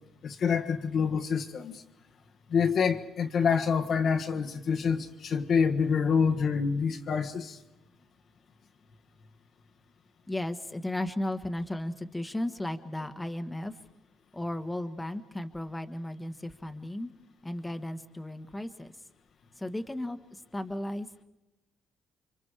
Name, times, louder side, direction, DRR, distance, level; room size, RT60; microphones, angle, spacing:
voice 1, 0.2-1.8 2.5-7.6, left 6 dB, 50° left, 1.4 m, -27 dB
voice 2, 10.3-13.7 14.3-17.1 17.4-18.9 19.6-21.1, left 1 dB, 10° left, 1.4 m, -35 dB
29.5 x 25.0 x 4.8 m
cardioid pair, 120°, 0 cm